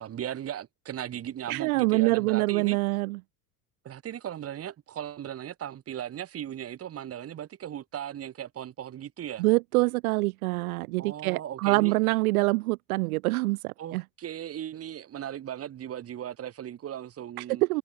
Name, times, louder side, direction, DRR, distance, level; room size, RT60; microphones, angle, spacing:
voice 1, 0.0-2.8 3.8-9.4 11.0-11.9 13.8-17.6, right 10 dB, 30° right, 1.1 m, -37 dB
voice 2, 1.5-3.2 9.4-14.0 17.4-17.8, right 23 dB, 65° right, 0.5 m, -25 dB
figure-of-eight pair, 60°, 49 cm